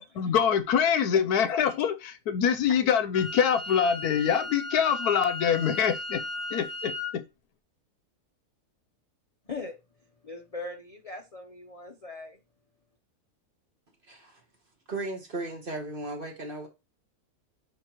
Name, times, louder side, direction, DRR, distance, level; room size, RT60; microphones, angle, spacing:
voice 1, 0.2-6.2 6.5-7.2, left 8 dB, 80° left, 1.2 m, -25 dB
Wind instrument woodwind instrument, 3.1-7.1, left 2 dB, 10° left, 1.1 m, -36 dB
voice 2, 9.5-9.8 10.2-12.4, left 3 dB, 35° left, 0.6 m, -40 dB
voice 3, 14.1-14.4 14.9-16.7, right 2 dB, 40° right, 1.2 m, -36 dB
9.3 x 3.6 x 3.0 m
omnidirectional pair, 1.6 m